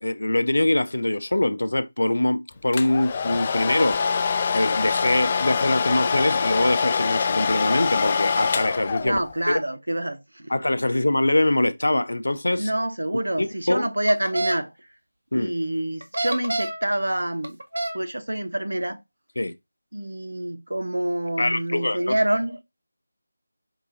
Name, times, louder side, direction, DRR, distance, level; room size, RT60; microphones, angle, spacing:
voice 1, 0.0-4.0 4.5-9.2 10.5-12.7 13.4-13.9 15.3-15.5 19.4-19.5 21.4-22.1, left 1 dB, 80° left, 0.6 m, -23 dB
Domestic sounds home sounds, 2.7-9.4, left 6 dB, 25° left, 0.4 m, -24 dB
voice 2, 9.0-10.5 12.6-14.7 15.3-17.6 17.9-19.0 19.9-22.6, right 1 dB, 90° right, 0.8 m, -27 dB
sound 1, 14.1-14.6 16.0-16.8 17.4-18.0, right 2 dB, 70° right, 1.0 m, -27 dB
4.7 x 3.7 x 2.7 m
figure-of-eight pair, 170°, 0 cm